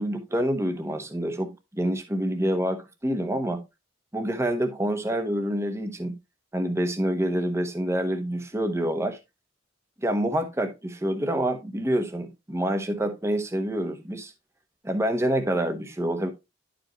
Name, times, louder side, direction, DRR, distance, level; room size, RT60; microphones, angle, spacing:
voice 1, 0.0-3.6 4.1-6.2 6.5-9.2 10.0-14.3 14.8-16.3, right 1 dB, 15° right, 1.0 m, -27 dB
10.5 x 5.1 x 2.9 m
head